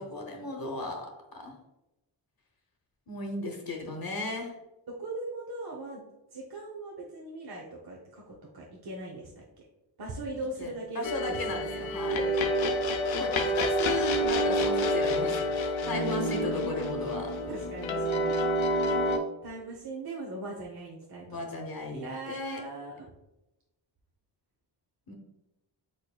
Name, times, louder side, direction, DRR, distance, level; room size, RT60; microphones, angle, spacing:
voice 1, 0.0-1.5 3.1-4.6 10.6-12.2 13.1-17.3 21.3-22.6 25.1-25.2, left 2 dB, 50° left, 2 dB, 0.9 m, -36 dB
voice 2, 4.9-6.0 6.3-9.6 10.0-11.0 11.3-11.8 12.1-13.6 15.9-16.7 17.5-18.3 19.4-21.4 21.9-22.9, right 2 dB, 55° right, -2 dB, 0.9 m, -39 dB
sound 1, 11.0-19.2, equal, 80° left, 0.7 m, -28 dB
4.8 x 4.4 x 2.3 m, 0.95 s
wide cardioid pair, 80°, 46 cm